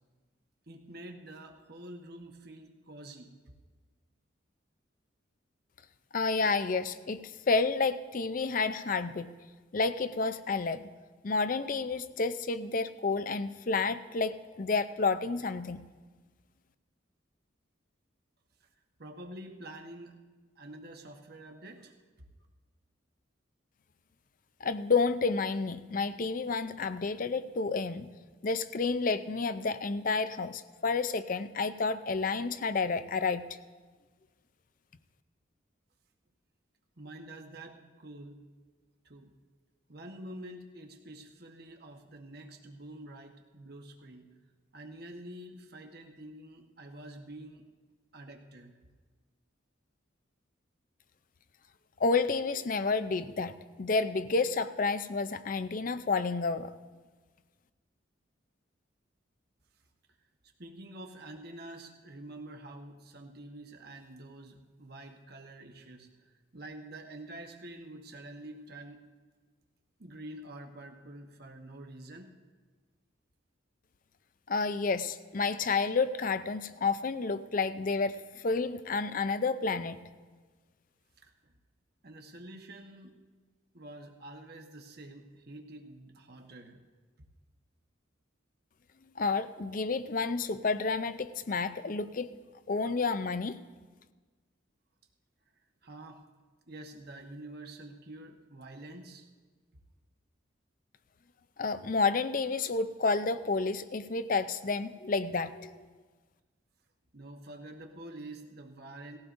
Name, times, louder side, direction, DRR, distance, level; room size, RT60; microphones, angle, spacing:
voice 1, 0.7-3.4 18.6-18.7 19.0-20.2 20.5-21.9 37.0-38.4 39.0-39.3 39.9-44.3 44.7-47.6 48.1-48.8 60.6-69.0 70.0-72.3 81.2-81.5 82.0-83.2 83.7-86.8 95.8-96.2 96.7-99.3 107.1-109.2, right 1 dB, 50° right, 3 dB, 1.2 m, -47 dB
voice 2, 6.1-9.3 9.7-10.9 11.2-15.8 24.6-28.1 28.4-33.5 52.0-56.7 74.5-80.0 89.2-92.3 92.7-93.6 101.6-105.7, left 4 dB, 45° left, 12 dB, 0.5 m, -30 dB
19.0 x 15.5 x 2.6 m, 1.4 s
head